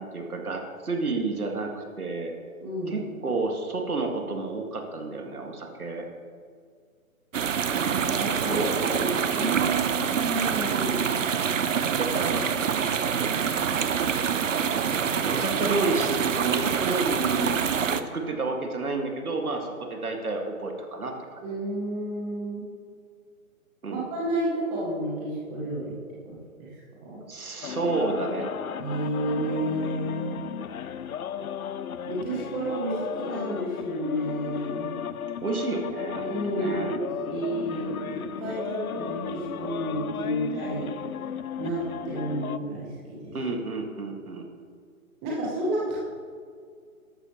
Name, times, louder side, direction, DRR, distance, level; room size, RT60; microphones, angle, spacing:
voice 1, 0.0-2.3 2.9-6.1 8.5-9.7 11.9-12.5 14.9-21.4 23.8-24.0 27.3-28.5 35.4-36.9 43.3-44.5, right 3 dB, 80° right, 3 dB, 2.0 m, -30 dB
voice 2, 2.6-2.9 7.7-8.7 9.0-11.1 21.4-22.7 23.9-25.9 26.2-26.8 27.0-27.2 28.8-30.3 32.0-34.9 36.2-37.0 37.3-40.9 41.6-43.3 45.2-46.0, right 1 dB, 5° right, -6 dB, 0.7 m, -31 dB
sound 1, 7.3-18.0, right 7 dB, 60° right, 0.7 m, -26 dB
sound 2, 27.6-42.6, left 8 dB, 75° left, 0.6 m, -35 dB
13.0 x 10.0 x 3.0 m, 2.1 s
figure-of-eight pair, 150°, 43 cm